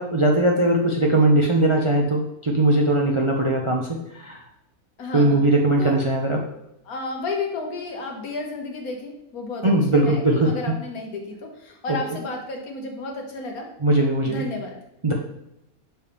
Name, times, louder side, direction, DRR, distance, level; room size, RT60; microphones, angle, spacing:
voice 1, 0.0-4.4 5.1-6.4 9.6-10.5 13.8-14.4 15.0-15.1, right 1 dB, 40° right, 0 dB, 0.4 m, -20 dB
voice 2, 5.0-5.4 5.8-6.0 6.9-13.7 14.2-14.8, left 3 dB, 85° left, 2 dB, 1.6 m, -32 dB
6.9 x 4.5 x 3.4 m, 0.84 s
omnidirectional pair, 1.5 m